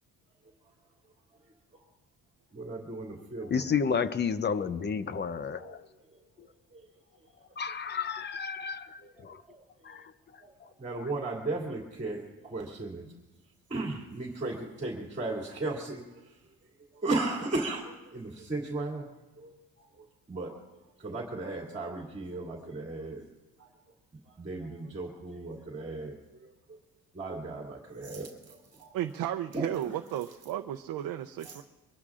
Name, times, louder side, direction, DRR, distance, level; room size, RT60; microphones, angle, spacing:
voice 1, 2.5-3.7 5.2-5.3 5.6-5.8 9.0-9.1 9.5-9.6 9.9-10.0 10.4-10.5 10.8-13.1 13.7-16.0 17.0-19.1 19.4-19.5 20.3-20.6 21.0-23.2 23.6-23.7 24.4-26.2 26.4-26.5 27.1-28.3 28.8-28.9 29.5-29.7, right 2 dB, 20° right, -2 dB, 2.7 m, -35 dB
voice 2, 3.5-5.8 7.6-8.9 9.2-9.4 9.9-10.0, left 6 dB, 30° left, 12 dB, 0.7 m, -31 dB
voice 3, 28.9-31.6, right 12 dB, 85° right, 5 dB, 0.7 m, -34 dB
24.0 x 21.5 x 2.5 m, 1.1 s
cardioid pair, 140°, 33 cm